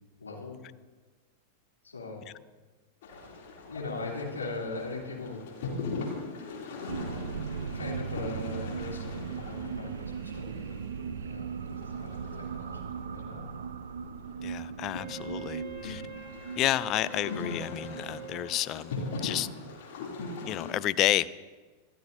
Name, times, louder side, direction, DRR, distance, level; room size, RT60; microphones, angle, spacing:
voice 1, 0.2-0.6 1.8-2.3 3.6-5.4 7.7-13.5, left 3 dB, 75° left, -2 dB, 3.0 m, -40 dB
sound 1, 3.0-20.7, left 3 dB, 55° left, 2.9 m, -41 dB
sound 2, 6.9-19.7, right 7 dB, 65° right, 0.4 m, -39 dB
voice 2, 14.4-16.0 16.6-18.9 19.2-19.5 20.5-21.5, left 14 dB, 35° left, 16 dB, 0.4 m, -30 dB
Wind instrument woodwind instrument, 14.9-19.2, right 5 dB, 10° left, 5.0 m, -45 dB
25.5 x 11.5 x 2.7 m, 1.3 s
figure-of-eight pair, 90°, 0 cm